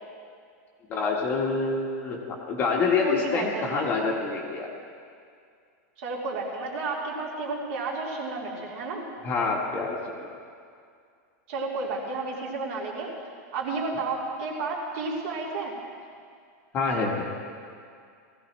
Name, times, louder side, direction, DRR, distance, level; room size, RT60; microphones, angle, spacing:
voice 1, 0.9-4.7 9.2-10.0 16.7-17.3, left 4 dB, 20° left, -1 dB, 1.2 m, -26 dB
voice 2, 3.0-3.7 6.0-9.0 11.5-13.1 13.5-15.7, right 3 dB, 50° right, -4 dB, 3.0 m, -31 dB
19.0 x 15.5 x 3.1 m, 2.2 s
supercardioid pair, 175°, 9 cm